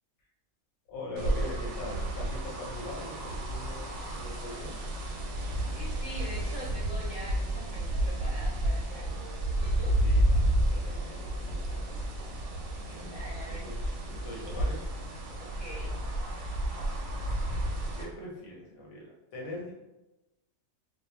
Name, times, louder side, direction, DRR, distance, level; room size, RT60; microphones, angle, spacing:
voice 1, 0.9-3.9 4.1-4.8 10.0-11.9 12.9-13.1 13.5-13.8 14.1-14.8 16.7-16.9 17.9-19.7, left 1 dB, 85° left, -3 dB, 1.2 m, -42 dB
sound 1, 1.2-18.0, right 1 dB, 65° right, 0.8 m, -31 dB
voice 2, 5.7-9.2 9.6-10.0 13.0-13.7 15.4-15.9, equal, 25° left, -8 dB, 0.8 m, -44 dB
2.3 x 2.1 x 3.1 m, 1.0 s
omnidirectional pair, 1.4 m